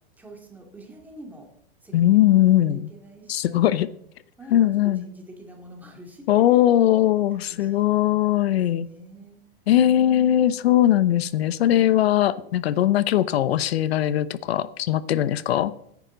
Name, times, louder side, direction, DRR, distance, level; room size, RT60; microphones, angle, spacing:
voice 1, 0.2-1.5 1.8-3.8 4.4-6.7 7.3-9.4 9.8-10.6, right 1 dB, 5° right, 2.4 m, -46 dB
voice 2, 1.9-2.9 3.3-3.9 4.5-5.0 6.3-8.9 9.7-15.7, left 12 dB, 90° left, 0.8 m, -20 dB
16.5 x 9.8 x 3.9 m
supercardioid pair, 160°, 30 cm